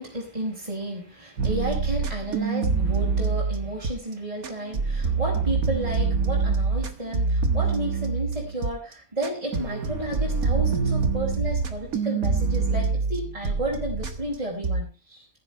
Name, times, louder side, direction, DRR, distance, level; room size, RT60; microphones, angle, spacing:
voice 1, 0.0-15.4, right 1 dB, 25° right, -4 dB, 4.8 m, -32 dB
sound 1, 1.4-4.1 4.4-8.7 9.2-14.4 14.6-14.8, right 4 dB, 75° right, 2.0 m, -25 dB
15.0 x 10.5 x 4.4 m, 0.32 s
omnidirectional pair, 1.5 m